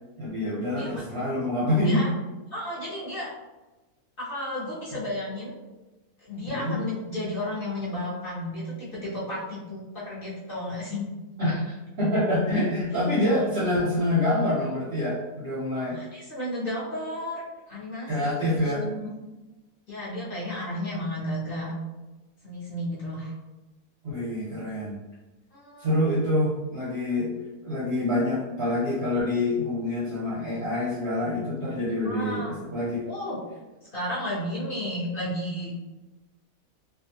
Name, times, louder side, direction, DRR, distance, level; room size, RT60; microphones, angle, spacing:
voice 1, 0.2-2.0 6.5-6.8 11.4-16.0 18.1-18.8 24.0-25.0 25.8-27.3 27.6-33.0, left 1 dB, 60° right, -6 dB, 0.7 m, -26 dB
voice 2, 0.7-1.0 1.8-2.1 2.5-3.3 4.2-5.5 6.2-11.1 12.5-12.6 15.7-19.1 19.9-21.7 22.4-23.3 25.5-26.0 32.0-32.6 33.0-33.4 33.9-35.7, left 1 dB, 45° left, -8 dB, 0.9 m, -33 dB
2.7 x 2.3 x 2.7 m, 1.1 s
omnidirectional pair, 1.6 m